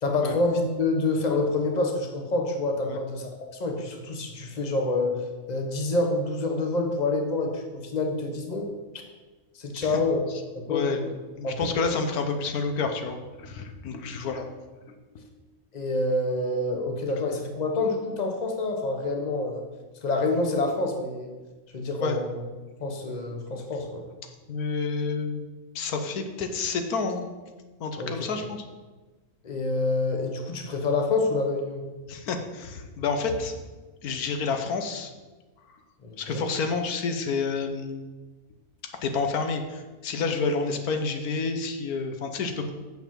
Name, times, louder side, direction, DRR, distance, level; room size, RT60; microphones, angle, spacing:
voice 1, 0.0-3.3 3.6-5.2 5.5-8.7 9.5-10.3 10.5-11.1 11.4-11.8 15.7-19.6 20.0-21.3 21.7-22.4 22.8-24.0 28.0-28.4 29.4-31.8 36.0-36.5, left 2 dB, 30° left, 3 dB, 1.2 m, -27 dB
voice 2, 10.7-11.0 11.4-14.5 15.1-15.3 22.0-22.2 24.5-25.4 25.7-27.3 27.8-28.6 32.1-33.5 34.0-35.1 36.2-38.0 39.0-42.7, left 4 dB, 85° left, 6 dB, 1.4 m, -29 dB
7.0 x 5.9 x 7.4 m, 1.2 s
omnidirectional pair, 1.5 m